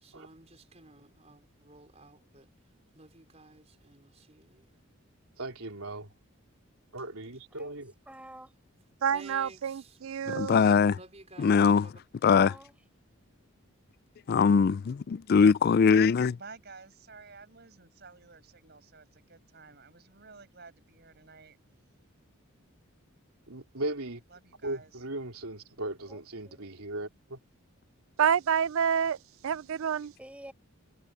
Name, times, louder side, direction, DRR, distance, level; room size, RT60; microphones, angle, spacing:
voice 1, 0.0-2.4 2.9-4.7 9.1-10.0 10.8-12.0, right 2 dB, 30° right, 4.8 m, -53 dB
voice 2, 5.4-6.1 6.9-7.9 23.5-24.2 24.6-27.4, right 2 dB, 85° right, 3.4 m, -37 dB
voice 3, 8.1-8.5 12.3-12.8 26.1-26.7 30.2-30.5, right 1 dB, 5° right, 4.6 m, -48 dB
voice 4, 9.0-10.7 28.2-29.2 29.4-30.1, right 7 dB, 70° right, 0.4 m, -28 dB
voice 5, 10.3-11.0 11.4-11.9 12.2-12.5 14.3-16.3, left 5 dB, 45° left, 0.3 m, -22 dB
voice 6, 16.4-21.6 24.3-25.0, right 4 dB, 50° right, 5.6 m, -52 dB
head